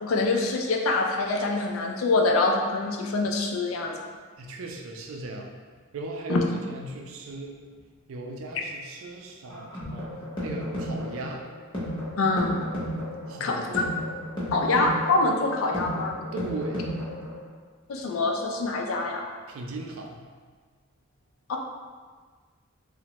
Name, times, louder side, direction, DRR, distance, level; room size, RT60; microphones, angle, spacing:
voice 1, 0.0-3.9 6.3-6.4 12.2-12.6 13.4-13.8 14.5-16.1 17.9-19.3 21.5-21.6, left 3 dB, 90° left, 2 dB, 0.4 m, -25 dB
voice 2, 4.4-5.5 5.9-7.6 8.1-11.4 13.3-13.8 16.3-16.9 19.5-20.2, right 2 dB, 85° right, 1 dB, 0.4 m, -37 dB
sound 1, 9.5-17.5, equal, 25° left, 0.7 m, -33 dB
3.0 x 2.1 x 2.8 m, 1.5 s
head